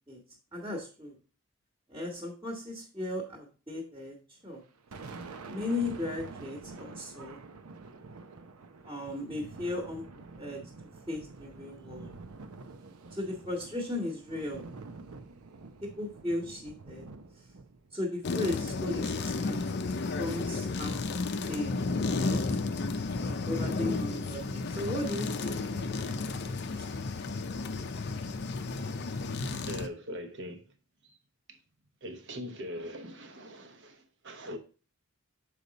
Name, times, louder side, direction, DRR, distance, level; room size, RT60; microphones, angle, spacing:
voice 1, 0.5-1.2 1.9-4.2 4.4-4.6 5.5-7.4 8.8-10.0 10.4-10.6 11.1-12.1 13.1-14.6 15.8-17.1 17.9-19.6 20.2-21.2 21.5-21.8 22.1-22.4 23.2-26.3 26.8-26.9, left 2 dB, 20° right, 1.3 m, -36 dB
Thunder, 4.5-19.1, right 3 dB, 90° right, 0.7 m, -48 dB
sound 1, 18.2-29.9, left 3 dB, 50° left, 0.5 m, -32 dB
voice 2, 29.6-30.7 31.0-31.2 31.5-31.6 32.0-34.6, equal, 55° right, 0.9 m, -41 dB
6.8 x 4.9 x 4.0 m
head